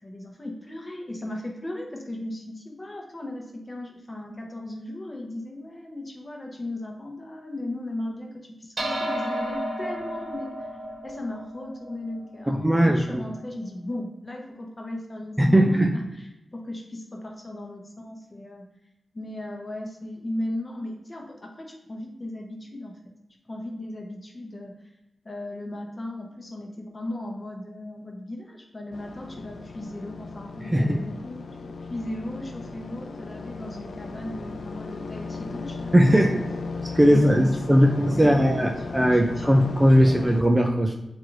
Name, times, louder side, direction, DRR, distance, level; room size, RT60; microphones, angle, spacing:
voice 1, 0.0-10.7 11.0-12.5 12.8-18.7 19.1-22.9 23.5-24.9 25.2-36.3 37.0-39.6 40.0-40.2, left 1 dB, 30° left, 0 dB, 0.9 m, -37 dB
sound 1, 8.8-13.4, equal, 60° right, 1.0 m, -33 dB
voice 2, 12.5-13.2 15.4-15.9 30.7-31.0 35.9-36.4 36.9-40.9, equal, 15° right, 2 dB, 0.4 m, -19 dB
sound 2, 28.9-40.4, left 3 dB, 80° left, 0.3 m, -36 dB
6.1 x 2.6 x 3.1 m, 0.92 s
wide cardioid pair, 95°, 0 cm